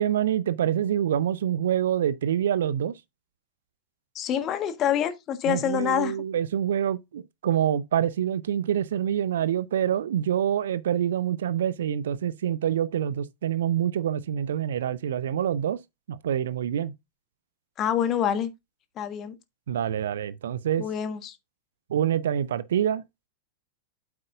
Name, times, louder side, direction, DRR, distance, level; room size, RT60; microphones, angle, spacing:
voice 1, 0.0-2.9 5.4-15.8 16.1-16.9 19.7-20.9 21.9-23.0, right 10 dB, 60° right, 0.6 m, -26 dB
voice 2, 4.1-6.1 17.8-18.5 19.0-19.4 20.8-21.4, left 9 dB, 30° left, 1.4 m, -26 dB
8.8 x 8.1 x 2.4 m
figure-of-eight pair, 90°, 0 cm